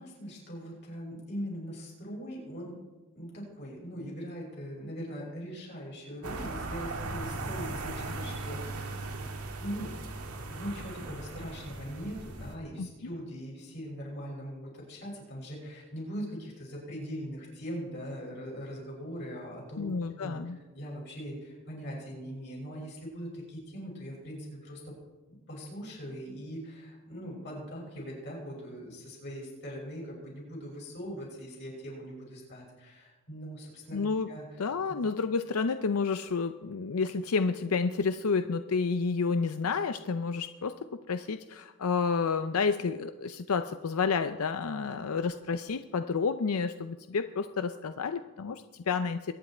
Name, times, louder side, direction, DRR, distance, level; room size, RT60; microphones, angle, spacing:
voice 1, 0.0-2.8 3.1-9.1 9.4-9.9 10.5-24.9 25.3-34.0 34.3-34.4 34.9-35.0, equal, 50° left, -3 dB, 6.1 m, -41 dB
sound 1, 6.2-12.5, right 2 dB, 90° right, 1.7 m, -38 dB
voice 2, 19.8-20.6 33.9-34.3 34.6-40.7 41.1-49.3, left 5 dB, 80° left, 10 dB, 0.5 m, -30 dB
22.5 x 9.7 x 4.4 m, 1.2 s
head